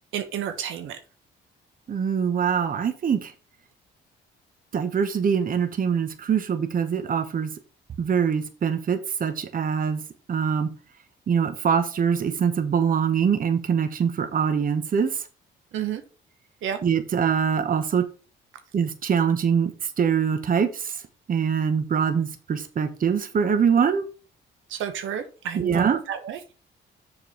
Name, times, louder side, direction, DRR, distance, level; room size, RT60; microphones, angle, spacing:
voice 1, 0.1-1.0 15.7-16.0 16.6-16.8 24.7-26.5, right 9 dB, 85° right, 8 dB, 1.1 m, -31 dB
voice 2, 1.9-3.3 4.7-7.5 8.0-10.0 10.3-10.7 11.3-15.1 16.8-18.0 18.7-19.7 20.0-20.9 21.3-24.0 25.5-26.0, right 7 dB, 45° right, 10 dB, 1.1 m, -23 dB
6.9 x 4.9 x 5.0 m, 0.34 s
cardioid pair, 90°, 20 cm